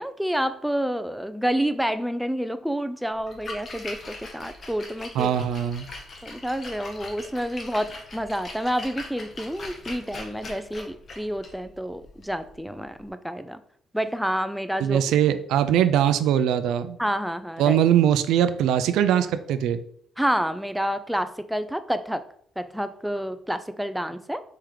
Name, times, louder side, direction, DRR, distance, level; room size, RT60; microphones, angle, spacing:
voice 1, 0.0-5.3 6.2-13.6 13.9-15.0 17.0-17.8 20.2-22.2 22.6-24.4, equal, ahead, 11 dB, 0.3 m, -29 dB
Splash splatter, 3.1-13.1, left 2 dB, 45° left, 1.0 m, -41 dB
voice 2, 5.2-5.9 14.8-17.0 17.6-19.8, right 10 dB, 90° right, 12 dB, 0.3 m, -21 dB
4.4 x 3.1 x 3.7 m, 0.64 s
cardioid pair, 90°, 0 cm